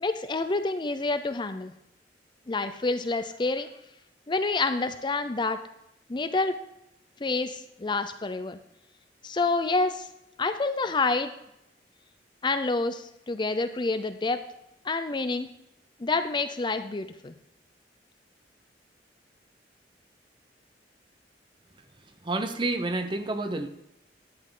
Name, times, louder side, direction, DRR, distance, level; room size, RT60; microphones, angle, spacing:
voice 1, 0.0-1.7 2.5-3.7 4.3-5.6 6.1-6.6 7.2-8.6 9.2-10.1 10.4-11.3 12.4-14.4 14.8-15.5 16.0-17.3, left 3 dB, 25° left, 10 dB, 0.5 m, -28 dB
voice 2, 22.2-23.7, right 2 dB, 25° right, 8 dB, 0.8 m, -29 dB
11.5 x 9.5 x 3.8 m, 0.81 s
head